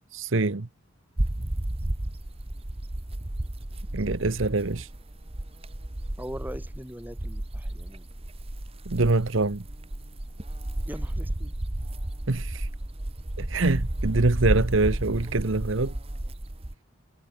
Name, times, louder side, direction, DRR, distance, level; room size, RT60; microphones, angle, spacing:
voice 1, 0.1-0.7 3.9-4.9 8.9-9.6 12.3-12.7 13.4-16.0, right 3 dB, 65° right, 1.0 m, -25 dB
sound 1, 1.2-16.7, right 1 dB, 25° right, 1.1 m, -32 dB
voice 2, 6.2-8.1 10.9-11.5, equal, 10° right, 7.0 m, -40 dB
head